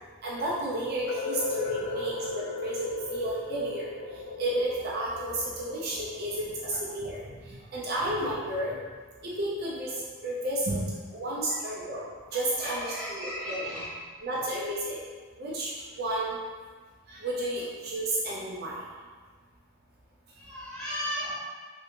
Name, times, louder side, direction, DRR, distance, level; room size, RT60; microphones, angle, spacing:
voice 1, 0.2-3.9 4.4-8.8 9.2-9.9 10.2-12.0 12.3-13.7 14.2-15.0 15.4-15.7 16.0-16.4 17.1-18.8, right 1 dB, 50° right, -5 dB, 0.5 m, -32 dB
sound 1, 1.1-6.9, left 3 dB, 80° left, 0.4 m, -36 dB
voice 2, 12.6-14.0 20.4-21.4, equal, 5° left, -11 dB, 1.0 m, -35 dB
3.3 x 2.7 x 2.9 m, 1.5 s
head